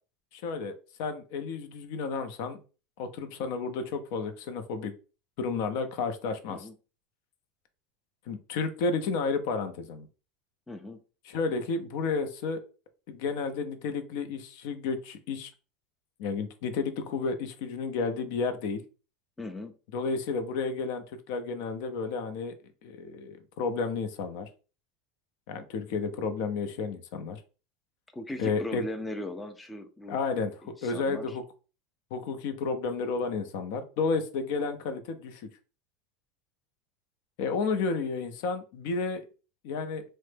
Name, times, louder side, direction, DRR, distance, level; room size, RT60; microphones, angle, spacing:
voice 1, 0.3-0.7 1.0-2.6 3.0-4.9 5.4-6.7 8.3-10.1 11.3-12.6 13.1-15.5 16.2-18.8 19.9-22.5 22.8-24.5 25.5-27.4 28.4-28.8 30.1-31.4 32.1-35.5 37.4-39.2 39.6-40.0, left 4 dB, 65° left, 8 dB, 0.5 m, -31 dB
voice 2, 10.7-11.0 19.4-19.8 28.1-30.2 30.6-31.4, left 1 dB, 10° left, 6 dB, 0.4 m, -38 dB
3.1 x 2.1 x 3.2 m, 0.35 s
supercardioid pair, 135°, 0 cm